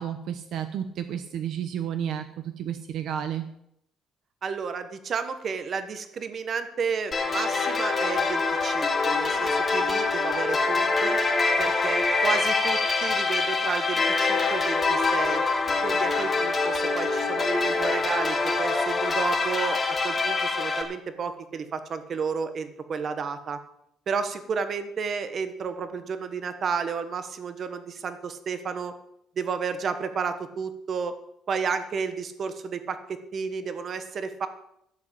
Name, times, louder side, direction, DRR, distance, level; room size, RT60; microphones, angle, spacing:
voice 1, 0.0-3.5, right 9 dB, 60° right, 9 dB, 0.9 m, -31 dB
voice 2, 4.4-11.2 11.6-15.4 15.8-19.8 20.0-23.6 24.1-28.9 29.4-31.1 31.5-34.5, right 5 dB, 35° right, 10 dB, 1.3 m, -32 dB
sound 1, 7.1-20.8, left 3 dB, 20° left, 2.3 m, -25 dB
13.0 x 7.7 x 8.5 m, 0.76 s
cardioid pair, 170°, 0 cm